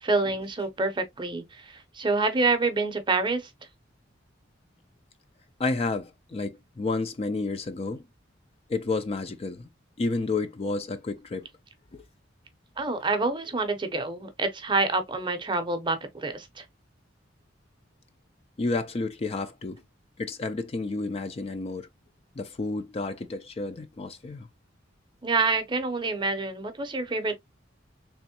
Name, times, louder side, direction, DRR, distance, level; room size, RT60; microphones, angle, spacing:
voice 1, 0.0-3.5 12.8-16.6 25.2-27.4, right 3 dB, 25° right, 0.7 m, -27 dB
voice 2, 5.6-8.1 8.7-9.7 10.0-11.5 11.9-12.1 18.6-19.8 20.2-21.9 22.4-24.5, left 3 dB, 30° left, 0.4 m, -31 dB
3.5 x 3.0 x 2.8 m
head